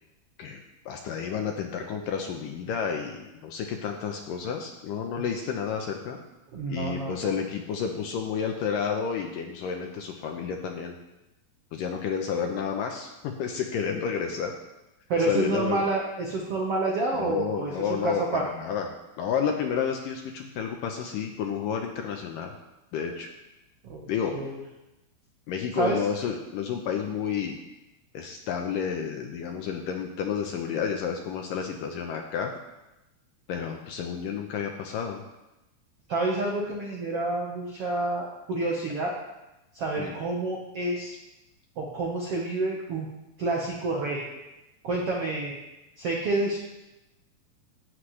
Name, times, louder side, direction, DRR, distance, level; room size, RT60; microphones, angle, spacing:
voice 1, 0.9-6.2 6.7-11.0 11.7-14.5 15.3-15.8 17.1-18.9 19.2-22.5 22.9-23.3 24.1-24.4 25.5-27.6 28.1-32.5 33.5-35.2 40.0-40.1, left 7 dB, 75° left, 3 dB, 2.1 m, -30 dB
voice 2, 6.5-7.3 15.1-18.5 23.8-24.6 25.7-26.0 36.1-39.2 39.7-41.1 41.8-43.1 43.4-44.2 44.8-45.6 46.0-46.6, right 2 dB, 70° right, -2 dB, 1.4 m, -29 dB
17.5 x 7.8 x 3.2 m, 0.97 s
omnidirectional pair, 4.6 m